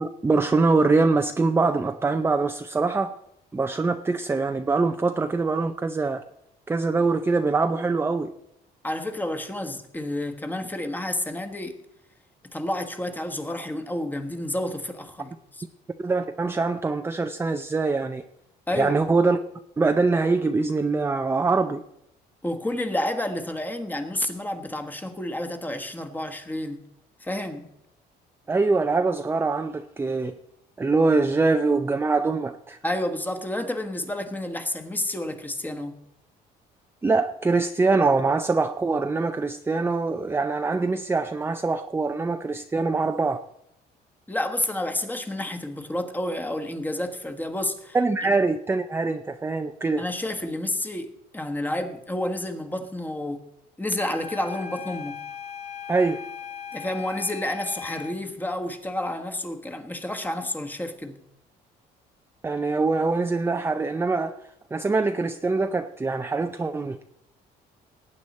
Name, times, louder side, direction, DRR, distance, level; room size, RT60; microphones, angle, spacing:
voice 1, 0.0-3.2 3.5-6.2 6.7-8.3 16.0-18.2 18.7-19.4 19.8-21.8 28.5-30.4 30.8-32.8 37.0-43.4 47.9-50.1 55.9-56.2 62.4-64.4 64.7-67.0, right 3 dB, 15° right, 0.5 m, -23 dB
voice 2, 8.8-11.8 12.5-15.6 18.7-19.0 22.4-26.8 27.2-27.7 32.8-36.0 44.3-48.0 50.0-53.5 53.8-55.1 56.7-61.2, left 1 dB, 10° left, 1.3 m, -30 dB
sound 1, 54.0-58.2, left 7 dB, 40° left, 1.4 m, -38 dB
18.5 x 8.5 x 4.2 m
cardioid pair, 110°, 17 cm